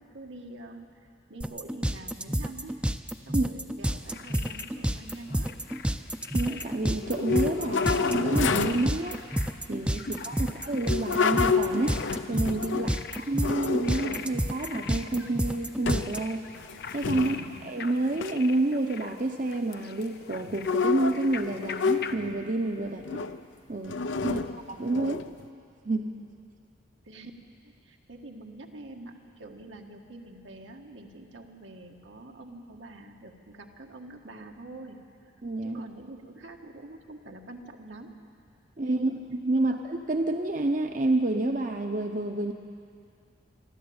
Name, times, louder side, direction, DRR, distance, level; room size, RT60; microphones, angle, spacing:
voice 1, 0.0-2.8 3.3-5.5 10.0-10.5 12.7-13.1 17.1-17.7 22.8-23.1 24.2-24.5 27.1-27.3 27.6-35.0 35.6-38.1 38.9-39.2 39.5-39.8, right 2 dB, 85° right, 2 dB, 1.7 m, -46 dB
sound 1, 1.4-16.2, right 1 dB, 5° right, 0.5 m, -29 dB
sound 2, 3.9-22.2, left 6 dB, 55° left, 0.8 m, -44 dB
voice 2, 6.3-9.2 9.7-12.0 12.3-16.4 16.9-17.4 17.6-23.0 23.7-24.0 24.2-24.4 24.8-25.2 25.8-26.1 35.4-35.8 38.8-42.5, right 2 dB, 45° right, 5 dB, 0.8 m, -29 dB
sound 3, 7.0-8.9 10.8-13.0 13.4-14.3 14.9-15.4 15.9-16.2 16.5-17.6 18.1-18.3 20.5-22.4 23.0-23.4 23.9-25.4, left 5 dB, 90° left, 0.7 m, -29 dB
24.5 x 13.0 x 8.8 m, 2.4 s
head